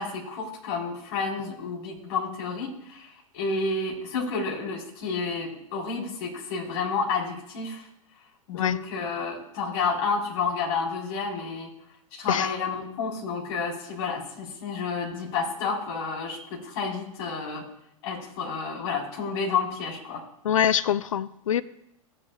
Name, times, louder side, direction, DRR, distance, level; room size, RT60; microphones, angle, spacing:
voice 1, 0.0-7.9 8.5-11.7 12.1-17.6 18.0-20.2, left 4 dB, 50° left, -1 dB, 3.6 m, -30 dB
voice 2, 20.4-21.6, left 9 dB, 65° left, 16 dB, 0.5 m, -24 dB
15.5 x 8.9 x 2.2 m, 0.76 s
figure-of-eight pair, 95°, 18 cm